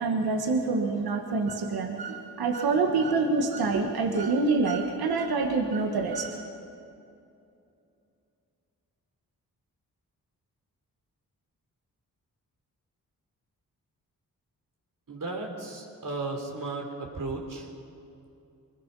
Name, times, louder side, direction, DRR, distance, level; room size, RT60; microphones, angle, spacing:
voice 1, 0.0-6.4, right 3 dB, 90° right, 3 dB, 1.7 m, -26 dB
voice 2, 15.1-17.7, right 3 dB, 60° right, 1 dB, 4.1 m, -35 dB
24.5 x 20.0 x 5.6 m, 2.6 s
cardioid pair, 65°, 36 cm